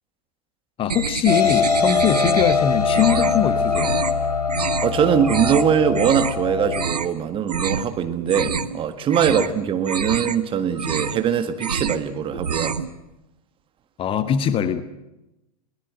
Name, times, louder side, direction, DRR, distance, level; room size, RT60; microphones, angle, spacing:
voice 1, 0.8-4.0 9.3-9.5 14.0-14.8, left 9 dB, 25° left, 12 dB, 1.3 m, -22 dB
sound 1, 0.9-2.6 2.9-3.4 3.7-4.1 4.5-4.9 5.2-5.6 5.9-6.4 6.7-7.1 7.5-7.9 8.2-8.8 9.1-9.5 9.8-10.4 10.7-11.2 11.5-12.0 12.3-12.9, right 6 dB, 75° right, 1.1 m, -27 dB
sound 2, 1.3-6.9, left 5 dB, 70° left, 2.7 m, -22 dB
voice 2, 4.8-12.8, right 8 dB, 25° right, 9 dB, 1.7 m, -22 dB
22.0 x 18.5 x 7.8 m, 0.92 s
figure-of-eight pair, 95°, 20 cm